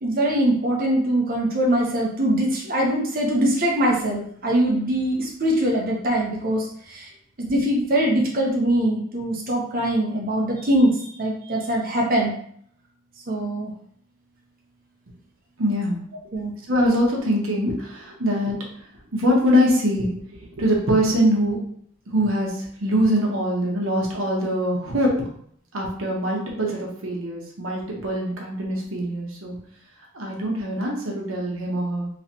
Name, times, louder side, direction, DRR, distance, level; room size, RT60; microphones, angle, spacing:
voice 1, 0.0-7.1 7.4-12.3 13.3-13.7 16.3-16.5, right 1 dB, 45° right, -2 dB, 0.9 m, -22 dB
voice 2, 15.6-16.0 16.7-18.6 19.1-20.1 20.5-21.6 22.1-25.1 25.7-29.6 30.1-32.1, equal, 80° right, -1 dB, 1.0 m, -23 dB
3.1 x 3.1 x 2.8 m, 0.63 s
head